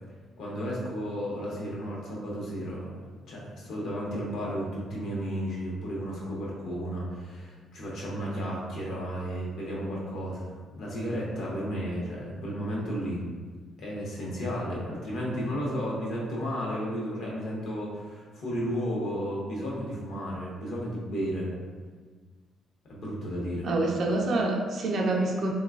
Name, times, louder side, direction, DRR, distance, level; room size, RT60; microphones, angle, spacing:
voice 1, 0.4-2.9 3.3-13.2 13.8-21.5 22.9-23.7, equal, 70° left, -4 dB, 0.8 m, -33 dB
voice 2, 23.6-25.5, right 2 dB, 60° right, 0 dB, 0.4 m, -26 dB
3.1 x 2.2 x 2.3 m, 1.5 s
cardioid pair, 90°, 0 cm